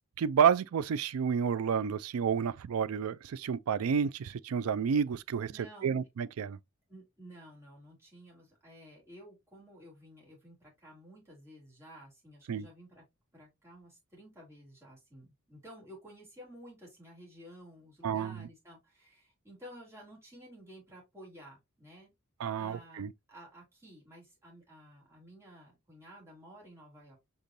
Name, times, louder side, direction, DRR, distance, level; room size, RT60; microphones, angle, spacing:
voice 1, 0.2-5.5 5.8-6.6 12.5-12.7 18.0-18.5 22.4-23.1, right 7 dB, 80° right, 0.4 m, -30 dB
voice 2, 5.5-5.9 6.9-13.0 13.3-22.1 22.6-27.2, equal, 15° right, 3.3 m, -53 dB
5.2 x 3.6 x 2.7 m
head